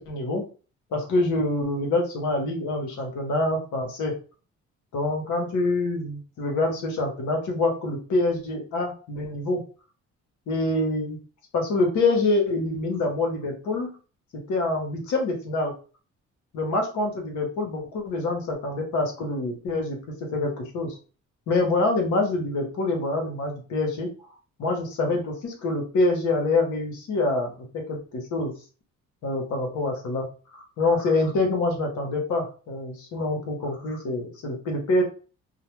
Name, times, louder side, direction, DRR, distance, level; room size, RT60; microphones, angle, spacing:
voice 1, 0.1-0.4 0.9-4.1 4.9-9.6 10.5-11.2 11.5-13.9 14.3-15.7 16.5-20.0 20.3-21.0 21.5-24.1 24.6-28.5 29.2-30.3 30.5-35.0, left 2 dB, 75° left, 2 dB, 1.0 m, -26 dB
2.4 x 2.1 x 3.0 m, 0.37 s
cardioid pair, 90°, 30 cm